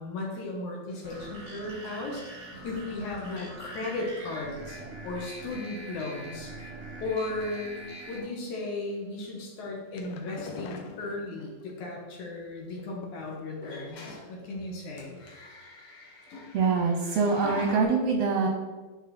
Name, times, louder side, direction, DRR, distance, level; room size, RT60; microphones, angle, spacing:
voice 1, 0.0-4.8 5.0-6.5 7.0-7.8 8.1-15.2, left 2 dB, 70° left, -2 dB, 2.8 m, -36 dB
sound 1, 0.9-5.0 5.4-5.8 6.8-6.9 7.3-7.8 8.1-8.4 10.4-10.5 13.5-17.8, left 2 dB, 55° left, 1.8 m, -47 dB
sound 2, 1.0-8.2, right 2 dB, 45° right, 1.0 m, -43 dB
sound 3, 9.6-11.7 12.7-13.6 14.1-14.5 14.8-14.9 15.2-15.3, left 5 dB, 85° left, 2.4 m, -45 dB
voice 2, 16.5-18.5, right 4 dB, 70° right, 3 dB, 1.6 m, -24 dB
10.0 x 5.7 x 4.3 m, 1.3 s
omnidirectional pair, 3.6 m